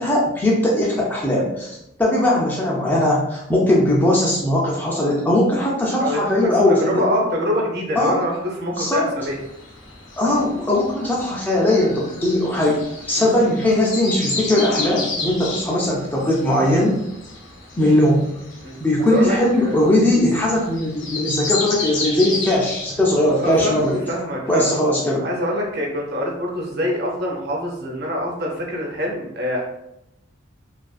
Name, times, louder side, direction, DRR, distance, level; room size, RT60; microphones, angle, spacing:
voice 1, 0.0-1.7 2.0-7.1 8.0-8.2 8.7-9.0 10.2-12.8 13.1-17.0 17.8-18.3 18.8-24.0 24.5-25.3, left 1 dB, 10° left, -4 dB, 0.3 m, -19 dB
voice 2, 6.0-9.4 10.3-10.4 13.2-13.5 17.8-18.0 18.6-18.7 19.1-19.7 23.4-24.7 25.2-29.6, equal, 50° right, -1 dB, 0.6 m, -25 dB
sound 1, 9.2-24.0, left 3 dB, 65° left, 0.6 m, -32 dB
2.4 x 2.3 x 2.3 m, 0.82 s
head